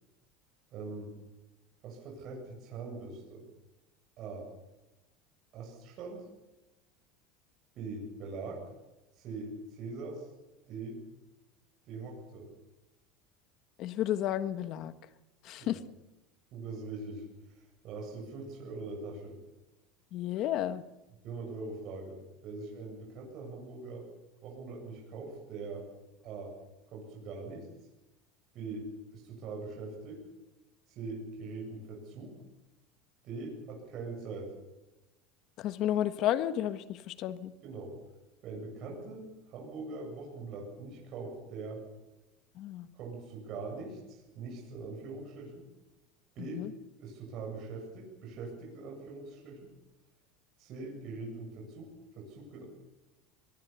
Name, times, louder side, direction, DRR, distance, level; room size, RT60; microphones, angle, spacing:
voice 1, 0.7-1.1 1.8-3.4 4.2-4.5 5.5-6.2 7.7-8.6 9.2-10.3 10.7-11.0 11.9-12.5 15.6-15.8 16.5-19.4 21.2-24.1 24.4-25.8 26.2-26.5 26.9-27.7 28.5-30.2 30.9-32.4 33.2-34.5 37.6-37.9 38.4-41.8 42.9-45.6 46.3-46.6 47.0-49.7 50.6-52.6, right 3 dB, 45° right, -1 dB, 7.9 m, -42 dB
voice 2, 13.8-14.9 15.4-15.8 20.1-20.8 35.6-37.5 42.5-42.9 46.4-46.7, left 12 dB, 50° left, 12 dB, 1.3 m, -32 dB
23.0 x 21.5 x 7.1 m, 1.0 s
supercardioid pair, 140°, 0 cm